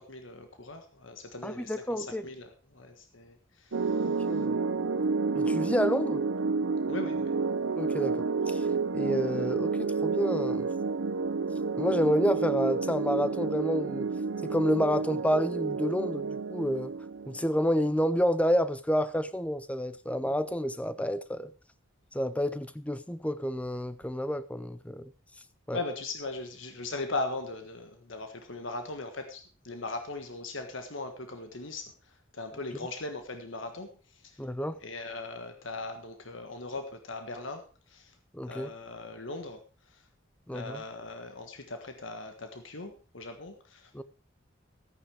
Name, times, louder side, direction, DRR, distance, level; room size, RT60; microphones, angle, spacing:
voice 1, 0.0-4.4 6.9-7.3 25.7-34.4 34.8-38.1 38.5-40.1 40.5-43.9, left 2 dB, 80° left, 1.5 m, -39 dB
voice 2, 1.4-2.3 4.0-4.6 5.3-6.2 7.8-8.7 8.9-10.7 11.8-14.1 14.4-16.9 17.3-21.5 22.1-25.1 25.7-25.8 34.4-34.8 38.3-38.7 40.5-40.8 43.9-44.0, equal, 5° left, 0.6 m, -29 dB
sound 1, 3.7-18.1, right 4 dB, 85° right, 0.7 m, -30 dB
14.0 x 9.2 x 4.8 m
head